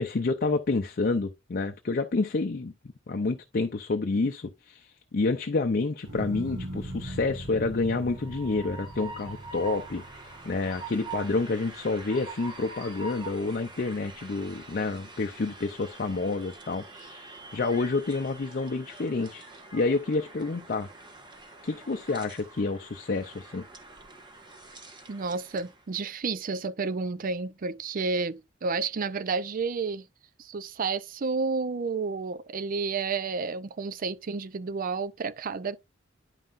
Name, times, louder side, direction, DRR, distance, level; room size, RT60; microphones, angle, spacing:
voice 1, 0.0-2.7 3.1-19.4 19.7-20.9 21.6-23.6, left 3 dB, 50° left, 0.5 m, -29 dB
sound 1, 6.0-12.4 12.8-13.4, right 1 dB, 70° right, 1.7 m, -40 dB
Train, 8.0-25.8, right 3 dB, 25° right, 1.3 m, -45 dB
voice 2, 25.1-30.1 30.4-35.8, right 4 dB, 45° right, 0.5 m, -31 dB
9.9 x 5.6 x 2.5 m
head